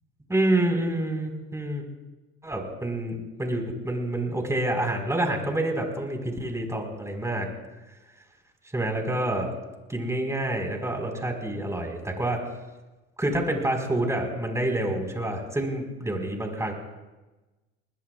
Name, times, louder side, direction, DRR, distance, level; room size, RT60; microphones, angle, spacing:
voice 1, 0.3-1.8 2.4-7.5 8.7-9.5 9.9-12.5 13.2-16.7, right 1 dB, 10° right, 2 dB, 4.5 m, -27 dB
23.5 x 20.5 x 2.4 m, 1.1 s
hypercardioid pair, 75°, 31 cm